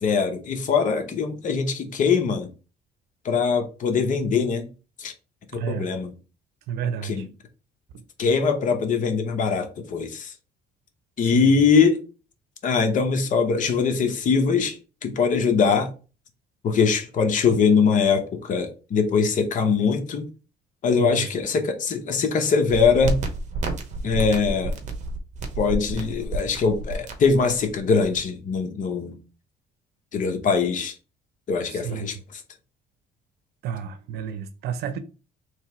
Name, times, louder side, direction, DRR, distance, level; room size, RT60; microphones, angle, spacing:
voice 1, 0.0-2.5 3.2-4.7 5.0-5.1 5.5-6.1 7.0-7.3 8.2-10.3 11.2-12.0 12.6-15.9 16.6-20.3 20.8-23.2 24.0-24.8 25.6-29.2 30.1-30.9 31.5-32.4, left 5 dB, 50° left, 0.9 m, -22 dB
voice 2, 5.5-5.9 6.7-7.2 7.9-8.0 11.3-11.6 21.0-21.3 31.7-32.1 33.6-35.0, right 8 dB, 75° right, 0.7 m, -30 dB
sound 1, 22.7-28.2, right 2 dB, 45° right, 1.0 m, -30 dB
3.2 x 2.9 x 4.4 m
cardioid pair, 110°, 17 cm